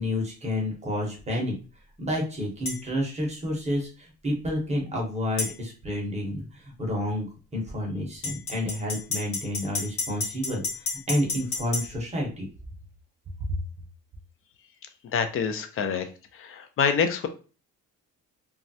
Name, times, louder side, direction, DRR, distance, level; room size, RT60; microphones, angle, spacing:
voice 1, 0.0-1.5 2.0-7.3 7.5-12.5, left 1 dB, 20° right, -1 dB, 0.7 m, -30 dB
sound 1, 2.7-2.8 5.4-5.5 8.2-11.9, left 4 dB, 90° left, 1.1 m, -31 dB
voice 2, 15.1-16.1 16.3-17.3, left 6 dB, 45° left, 8 dB, 0.4 m, -26 dB
3.1 x 2.3 x 2.6 m, 0.36 s
cardioid pair, 160°, 32 cm